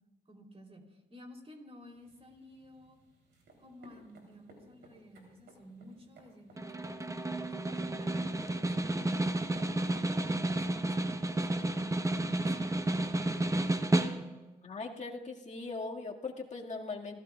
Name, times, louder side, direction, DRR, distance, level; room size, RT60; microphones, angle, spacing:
voice 1, 0.3-3.0 3.6-7.5 8.0-9.6 10.0-13.9, equal, 30° right, 2 dB, 3.6 m, -54 dB
sound 1, 1.8-11.7, right 2 dB, 75° right, 3.7 m, -61 dB
Snare drum, 6.6-14.5, right 1 dB, 15° right, 1.0 m, -31 dB
voice 2, 14.6-17.2, left 3 dB, 40° left, 0 dB, 2.2 m, -40 dB
27.0 x 15.5 x 2.5 m, 1.1 s
supercardioid pair, 60°, 19 cm